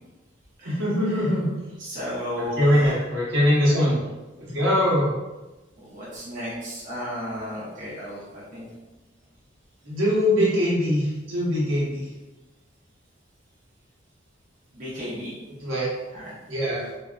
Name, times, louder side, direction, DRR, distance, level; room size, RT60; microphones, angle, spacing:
voice 1, 0.6-1.5 2.4-4.0 4.4-5.1 9.8-12.1 15.6-15.9 16.5-16.9, equal, 75° right, -7 dB, 0.9 m, -22 dB
voice 2, 1.8-2.9 5.8-8.6 14.7-15.3 16.1-16.3, equal, 40° right, -8 dB, 0.8 m, -34 dB
2.6 x 2.3 x 2.4 m, 1.1 s
head